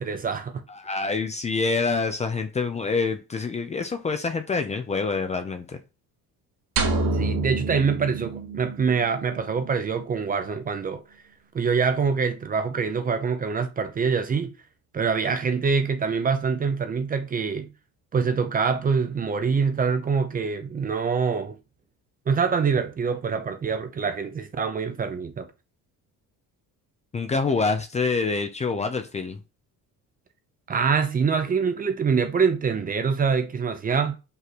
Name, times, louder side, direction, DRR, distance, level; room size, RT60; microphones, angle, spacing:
voice 1, 0.0-0.6 7.1-11.0 11.5-14.5 14.9-17.7 18.1-21.6 22.3-25.5 30.7-34.2, right 5 dB, 25° right, 0.7 m, -25 dB
voice 2, 0.7-5.8 27.1-29.4, left 4 dB, 20° left, 0.6 m, -26 dB
sound 1, 6.8-9.0, right 3 dB, 70° right, 2.1 m, -27 dB
5.6 x 3.8 x 6.0 m
cardioid pair, 175°, 35 cm